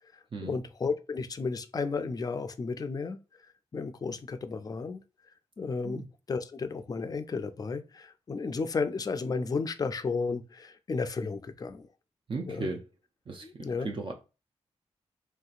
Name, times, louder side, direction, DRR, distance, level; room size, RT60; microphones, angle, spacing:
voice 1, 0.1-3.2 3.7-5.0 5.6-11.9 12.5-12.7 13.4-13.9, left 4 dB, 35° left, 0.4 m, -33 dB
voice 2, 12.3-12.9 13.3-14.1, right 3 dB, 45° right, 0.5 m, -36 dB
3.1 x 2.7 x 2.4 m
cardioid pair, 60°, 12 cm